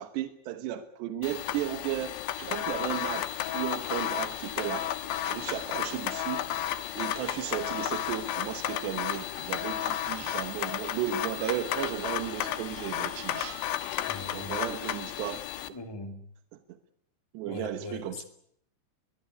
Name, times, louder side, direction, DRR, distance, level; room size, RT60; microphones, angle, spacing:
voice 1, 0.0-4.9 5.2-6.5 7.0-13.6 14.3-15.4 17.3-18.2, right 11 dB, 70° right, 3.2 m, -35 dB
sound 1, 1.2-15.7, left 12 dB, 75° left, 3.5 m, -33 dB
Motor vehicle (road) / Siren, 2.6-13.6, right 4 dB, 40° right, 5.7 m, -53 dB
voice 2, 14.0-14.6 15.7-16.2 17.5-18.2, left 2 dB, 10° left, 1.0 m, -40 dB
22.0 x 21.5 x 9.6 m
omnidirectional pair, 5.4 m